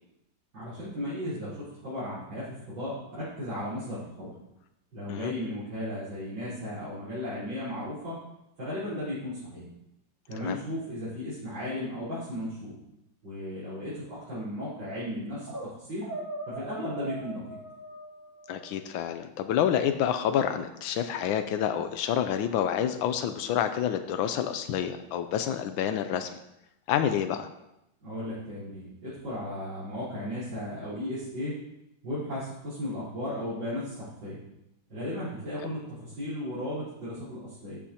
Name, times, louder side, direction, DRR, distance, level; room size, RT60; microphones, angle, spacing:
voice 1, 0.5-4.3 4.9-8.2 8.6-9.7 10.3-12.7 13.2-16.1 16.5-17.6 28.0-31.6 32.0-34.4 34.9-37.8, left 1 dB, 80° right, -12 dB, 5.2 m, -35 dB
sound 1, 15.2-15.7 16.0-18.8, right 2 dB, 10° right, 2.7 m, -40 dB
voice 2, 18.5-26.4 26.9-27.5, left 9 dB, 90° left, 8 dB, 1.4 m, -28 dB
12.5 x 8.6 x 2.9 m, 0.86 s
omnidirectional pair, 2.1 m